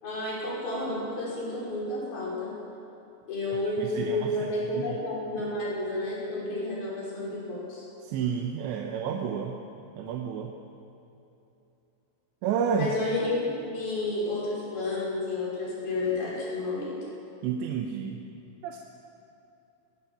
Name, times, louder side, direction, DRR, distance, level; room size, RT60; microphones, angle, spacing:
voice 1, 0.0-2.5 3.3-7.9 12.7-16.9, left 2 dB, 60° left, -6 dB, 7.9 m, -31 dB
voice 2, 3.8-4.3 4.7-5.0 5.4-5.5 8.0-9.6 9.9-10.5 12.4-12.9 17.4-18.2 18.6-18.8, right 7 dB, 90° right, 2 dB, 3.3 m, -30 dB
20.0 x 19.5 x 7.6 m, 2.9 s
omnidirectional pair, 5.0 m